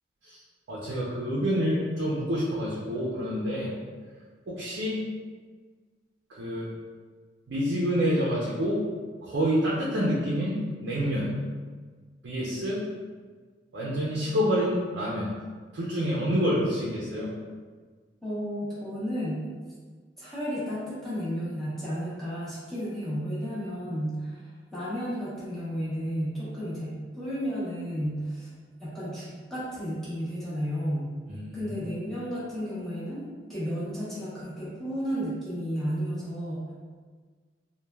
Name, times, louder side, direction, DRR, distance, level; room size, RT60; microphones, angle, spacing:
voice 1, 0.7-3.7 4.5-5.0 6.3-6.7 7.5-8.8 9.2-11.3 12.2-12.8 13.7-15.3 15.7-17.3 31.3-31.7, equal, 80° right, -6 dB, 0.5 m, -27 dB
voice 2, 18.2-19.4 20.2-28.5 28.8-31.1 31.5-33.2 33.5-36.7, equal, ahead, -11 dB, 0.8 m, -32 dB
3.1 x 2.2 x 2.2 m, 1.5 s
head